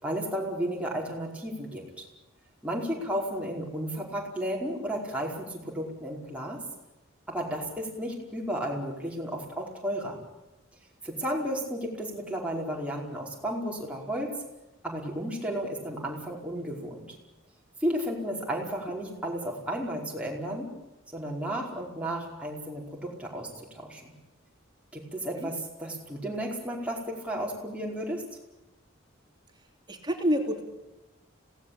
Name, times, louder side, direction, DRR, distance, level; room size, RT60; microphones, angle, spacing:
voice 1, 0.0-2.1 2.6-6.6 7.3-10.2 11.0-14.3 14.8-17.1 17.8-20.7 21.1-24.0 24.9-28.2, equal, 5° right, -2 dB, 5.0 m, -33 dB
voice 2, 29.9-30.6, equal, 20° right, 3 dB, 3.1 m, -28 dB
26.5 x 18.0 x 8.7 m, 0.97 s
head